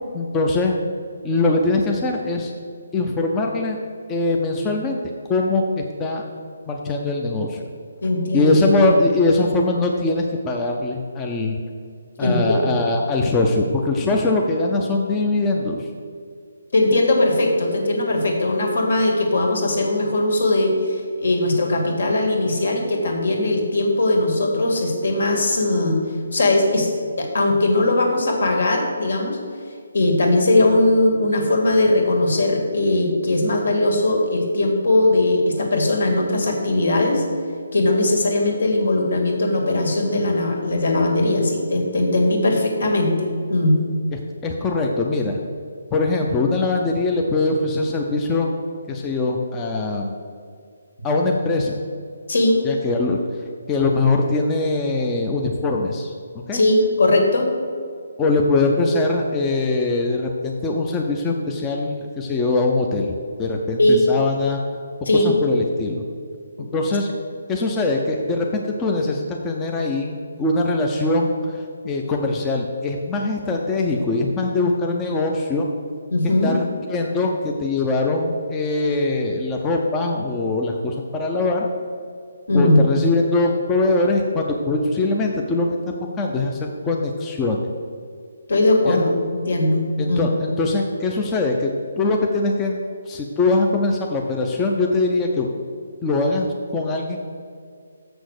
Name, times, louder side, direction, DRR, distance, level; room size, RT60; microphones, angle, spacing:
voice 1, 0.1-0.7 1.2-2.5 2.9-3.8 4.1-5.0 5.3-6.2 6.7-7.6 8.3-11.6 12.2-15.9 44.1-45.4 45.9-48.5 48.9-50.2 51.0-51.8 52.6-53.2 53.7-56.1 56.5-56.6 58.2-64.6 65.1-66.0 66.7-67.1 67.5-75.7 76.4-81.7 82.5-85.7 86.2-87.6 88.9-89.0 90.0-91.7 92.0-92.8 93.1-95.5 96.0-97.2, left 2 dB, 10° left, 0 dB, 0.5 m, -22 dB
voice 2, 8.0-8.6 12.2-12.6 16.7-26.0 26.3-26.9 27.2-29.4 29.9-37.2 37.7-43.8 52.3-52.6 56.5-57.5 63.8-64.0 65.1-65.3 76.1-76.5 82.5-82.8 88.5-89.1 89.4-89.8 90.1-90.3, left 2 dB, 70° left, 2 dB, 2.1 m, -19 dB
7.0 x 6.2 x 6.5 m, 2.1 s
hypercardioid pair, 170°, 0 cm